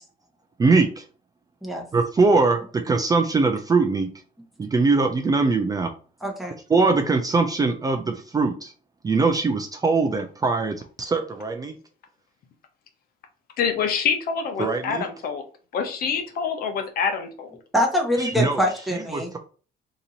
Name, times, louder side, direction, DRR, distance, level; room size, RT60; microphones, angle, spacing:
voice 1, 0.6-1.0 1.9-4.1 4.6-5.9 6.7-8.7 9.0-11.8 14.6-15.1 18.2-18.6 19.1-19.4, right 3 dB, 20° right, 5 dB, 0.4 m, -21 dB
voice 2, 6.2-6.5 17.7-19.3, left 1 dB, ahead, 1 dB, 1.0 m, -24 dB
voice 3, 13.6-15.4 15.7-17.5, left 6 dB, 60° left, 6 dB, 0.8 m, -26 dB
2.9 x 2.6 x 3.9 m, 0.39 s
cardioid pair, 110°, 17 cm